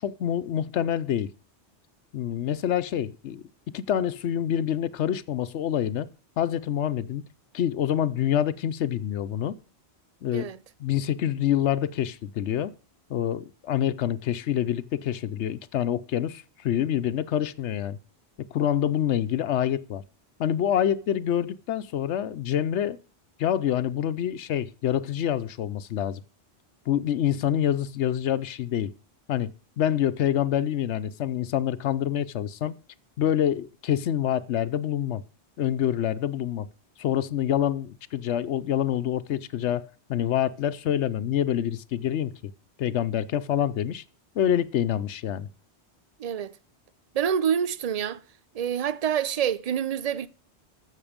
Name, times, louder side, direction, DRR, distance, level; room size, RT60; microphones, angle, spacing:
voice 1, 0.0-1.3 2.1-3.4 3.7-6.1 6.4-7.2 7.5-9.6 10.2-10.5 10.8-12.7 13.1-18.0 18.5-20.0 20.4-23.0 23.4-26.2 26.9-28.9 29.3-29.5 29.8-32.7 33.2-35.2 35.6-36.7 37.0-42.3 42.8-44.0 44.3-45.5, left 10 dB, 85° left, 1.0 m, -26 dB
voice 2, 46.2-46.5 47.1-48.2 48.5-50.3, right 8 dB, 45° right, 0.6 m, -27 dB
14.0 x 6.7 x 5.0 m
omnidirectional pair, 1.1 m